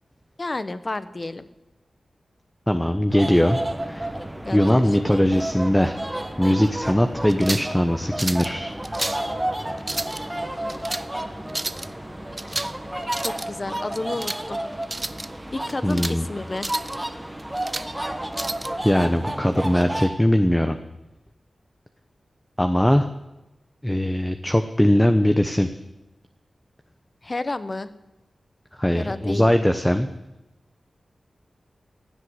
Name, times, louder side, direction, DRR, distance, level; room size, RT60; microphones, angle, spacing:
voice 1, 0.4-1.5 4.4-4.8 13.2-14.6 15.5-16.7 27.2-27.9 28.9-29.5, left 2 dB, 40° left, 13 dB, 1.0 m, -31 dB
voice 2, 2.7-4.1 4.5-6.0 6.4-8.7 15.8-16.3 17.8-17.9 18.8-20.8 22.6-23.1 23.8-25.8 28.7-30.1, left 1 dB, 10° left, 7 dB, 0.9 m, -20 dB
sound 1, 3.1-20.1, right 1 dB, 15° right, 1.6 m, -31 dB
sound 2, 7.3-7.7 8.2-8.5 8.8-9.3 9.8-10.2 10.7-11.1 11.5-11.9 12.4-12.8 13.0-13.5 13.9-14.4 14.8-15.3 15.7-16.2 16.6-17.0 17.4-17.9 18.3-18.7, right 2 dB, 30° right, 0.6 m, -31 dB
16.5 x 8.0 x 9.7 m, 0.97 s
cardioid pair, 60°, 0 cm